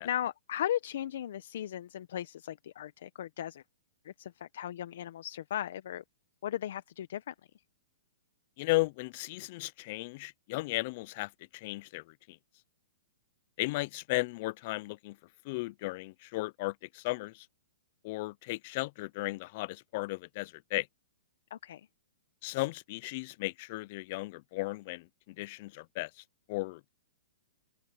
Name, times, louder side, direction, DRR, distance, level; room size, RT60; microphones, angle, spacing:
voice 1, 0.0-3.6 4.0-6.0 6.4-7.3 21.5-21.9, left 11 dB, 65° left, 0.9 m, -36 dB
voice 2, 8.6-12.4 13.6-15.2 15.4-17.5 18.0-20.9 22.4-26.1 26.5-26.9, left 22 dB, 40° left, 0.4 m, -35 dB
open air
hypercardioid pair, 155°, 0 cm